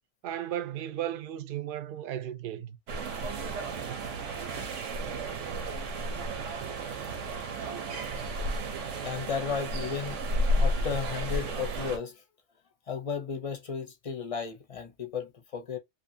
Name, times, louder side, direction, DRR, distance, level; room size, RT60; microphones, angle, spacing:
voice 1, 0.2-2.8, right 11 dB, 60° right, 0.6 m, -35 dB
sound 1, 2.9-12.0, right 1 dB, 85° right, 1.1 m, -32 dB
voice 2, 9.0-10.2 10.6-12.2 12.9-15.8, left 6 dB, 40° left, 0.5 m, -34 dB
2.7 x 2.5 x 2.5 m
omnidirectional pair, 1.2 m